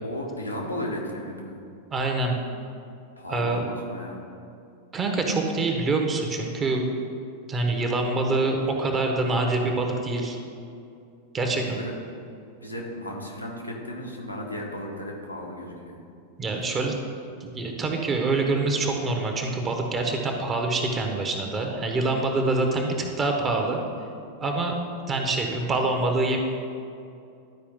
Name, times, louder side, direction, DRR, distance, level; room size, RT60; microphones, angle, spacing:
voice 1, 0.0-1.6 3.2-4.2 11.4-11.9 12.6-16.0 16.6-16.8, equal, 85° left, -2 dB, 1.1 m, -35 dB
voice 2, 1.9-2.3 3.3-3.7 4.9-6.9 7.5-10.4 11.3-11.8 16.4-16.9 17.4-23.8 24.4-24.8 25.1-26.4, right 2 dB, 25° right, 2 dB, 1.0 m, -25 dB
12.0 x 4.8 x 3.6 m, 2.5 s
figure-of-eight pair, 90°, 0 cm